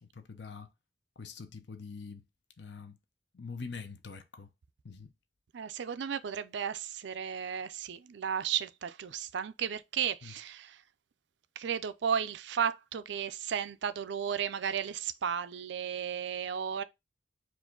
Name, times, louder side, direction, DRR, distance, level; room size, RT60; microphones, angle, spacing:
voice 1, 0.0-0.7 1.2-2.2 2.6-3.0 3.3-4.5 4.8-5.1 10.2-10.4, left 4 dB, 60° left, 0.7 m, -44 dB
voice 2, 5.5-10.8 11.6-16.8, right 8 dB, 65° right, 0.4 m, -34 dB
4.7 x 2.6 x 3.8 m
head